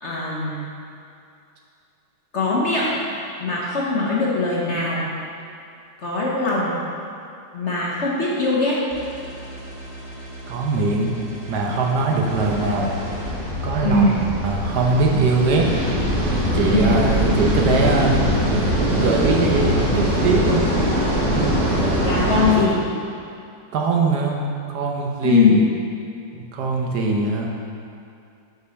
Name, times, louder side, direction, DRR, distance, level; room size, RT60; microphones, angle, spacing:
voice 1, 0.0-0.7 2.3-2.9 3.4-5.1 6.0-6.8 7.5-8.9 13.8-14.2 16.7-17.0 22.0-22.8 25.2-25.7, left 3 dB, 50° left, -5 dB, 0.9 m, -21 dB
sound 1, 8.9-13.3, right 1 dB, 30° left, 1.3 m, -38 dB
voice 2, 10.5-11.2 11.5-12.9 13.6-14.0 14.4-15.7 16.5-18.3 18.9-20.6 21.2-21.6 23.7-24.4 24.7-25.6 26.4-27.5, right 3 dB, 70° right, 0 dB, 1.3 m, -21 dB
sound 2, 12.3-22.5, equal, 45° right, 1.3 m, -22 dB
6.5 x 5.3 x 4.1 m, 2.6 s
omnidirectional pair, 1.9 m